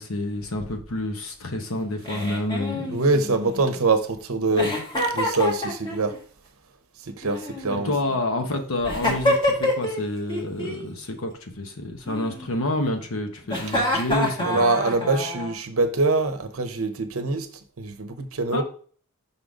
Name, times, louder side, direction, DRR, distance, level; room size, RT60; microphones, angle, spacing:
voice 1, 0.0-3.0 7.7-14.6 18.5-18.6, left 1 dB, 65° left, 1.0 m, -28 dB
Giggle, 2.0-3.9 4.6-6.2 7.2-8.2 8.8-10.0 10.3-10.8 12.1-12.8 13.5-15.5, left 1 dB, 20° left, 1.7 m, -27 dB
voice 2, 2.9-6.1 7.1-7.9 14.4-17.5 17.8-18.6, right 3 dB, 65° right, 0.7 m, -24 dB
5.7 x 3.8 x 4.9 m
head